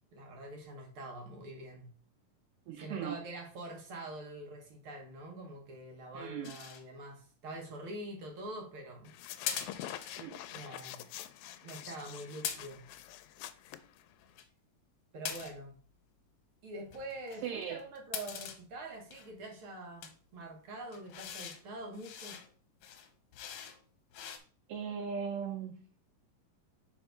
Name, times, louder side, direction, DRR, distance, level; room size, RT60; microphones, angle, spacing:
voice 1, 0.1-1.9 2.7-9.1 10.5-11.1 11.6-12.8 15.1-15.8 16.6-22.4, right 1 dB, 55° right, 1.5 m, -45 dB
voice 2, 2.7-3.2 6.1-6.5 10.2-10.4 17.4-17.8 24.7-25.8, right 7 dB, 75° right, 2.2 m, -38 dB
sound 1, 6.4-6.8 9.5-10.2 12.4-12.9 14.1-14.5 15.3-15.7 16.9-18.6 19.1-19.5 20.0-20.1 20.9-21.6 21.9-22.5 22.8-23.8 24.1-24.4, left 8 dB, 70° left, 2.0 m, -42 dB
sound 2, 9.1-14.4, left 12 dB, 90° left, 2.4 m, -47 dB
5.8 x 4.6 x 5.1 m
omnidirectional pair, 4.0 m